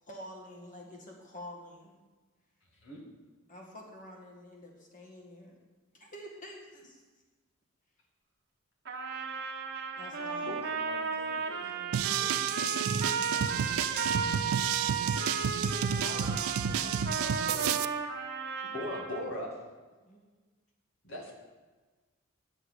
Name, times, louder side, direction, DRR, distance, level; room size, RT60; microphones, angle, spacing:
voice 1, 0.0-2.0 3.5-5.6 5.9-7.0 10.0-10.6 15.8-17.8 20.0-20.4, left 1 dB, 40° left, 0 dB, 1.9 m, -47 dB
voice 2, 2.7-3.0 10.4-10.6 18.7-19.5 21.0-21.3, left 1 dB, 60° left, -1 dB, 2.2 m, -38 dB
Trumpet, 8.8-19.3, right 5 dB, 55° right, 1.5 m, -34 dB
voice 3, 10.7-14.2 15.8-16.4, equal, 15° left, -3 dB, 1.7 m, -53 dB
sound 1, 11.9-17.8, right 8 dB, 75° right, 0.4 m, -31 dB
9.9 x 6.5 x 6.4 m, 1.3 s
head